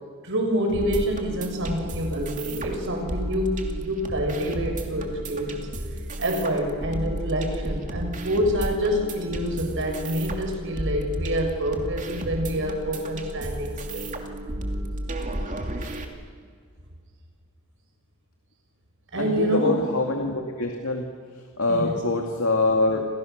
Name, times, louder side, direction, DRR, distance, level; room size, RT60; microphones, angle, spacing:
voice 1, 0.2-5.7 6.2-14.1 15.8-16.0 19.1-19.8 21.7-22.0, equal, 60° right, 3 dB, 6.1 m, -27 dB
sound 1, 0.7-16.1, right 1 dB, 35° right, 2.7 m, -33 dB
voice 2, 19.2-21.1 21.6-23.1, left 2 dB, 70° left, 2 dB, 2.4 m, -24 dB
29.0 x 27.0 x 6.7 m, 2.1 s
head